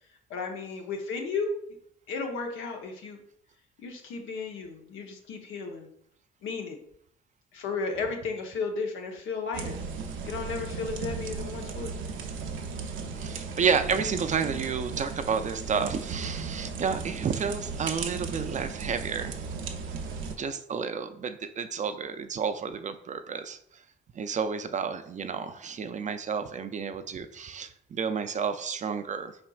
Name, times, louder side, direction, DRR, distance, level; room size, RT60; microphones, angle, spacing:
voice 1, 0.3-1.6 2.1-3.2 3.8-5.9 6.4-6.8 7.5-9.8 10.2-11.9, left 4 dB, 85° left, 3 dB, 0.9 m, -34 dB
sound 1, 9.5-20.4, right 5 dB, 80° right, 0.6 m, -36 dB
voice 2, 13.2-19.4 20.4-23.8 24.1-29.4, right 6 dB, 40° right, 9 dB, 0.4 m, -31 dB
4.9 x 4.3 x 2.3 m, 0.68 s
cardioid pair, 90°, 20 cm